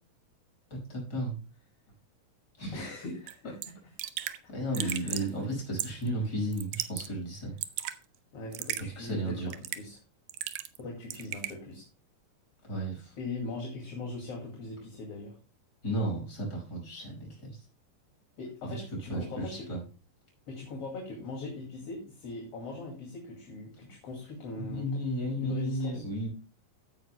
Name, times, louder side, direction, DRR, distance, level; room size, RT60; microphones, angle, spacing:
voice 1, 0.7-1.4 2.6-2.8 4.2-7.5 9.0-9.5 12.7-13.1 15.8-17.6 19.1-19.8 24.6-26.3, right 1 dB, 30° left, -2 dB, 6.0 m, -33 dB
voice 2, 2.7-3.7 4.7-5.3 8.3-9.3 9.7-10.0 10.8-11.9 13.2-15.4 18.4-19.7 20.5-26.0, left 3 dB, 45° left, -1 dB, 3.0 m, -40 dB
Raindrop / Drip, 3.3-3.4 3.6-3.7 4.0-4.4 4.7-5.3 5.8-6.1 6.5-7.1 7.4-8.0 8.5-8.8 9.5-9.9 10.3-10.8 11.1-11.5, right 13 dB, 80° right, 2.3 m, -35 dB
15.5 x 9.2 x 2.2 m, 0.33 s
omnidirectional pair, 4.1 m